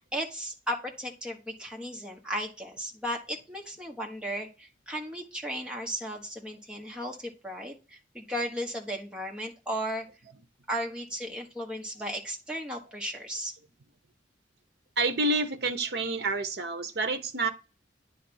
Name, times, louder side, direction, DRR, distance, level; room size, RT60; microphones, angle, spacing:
voice 1, 0.0-10.1 10.7-13.5, equal, 5° right, 1.2 m, -35 dB
voice 2, 15.0-17.5, right 2 dB, 60° right, 0.8 m, -28 dB
10.0 x 3.4 x 4.3 m
head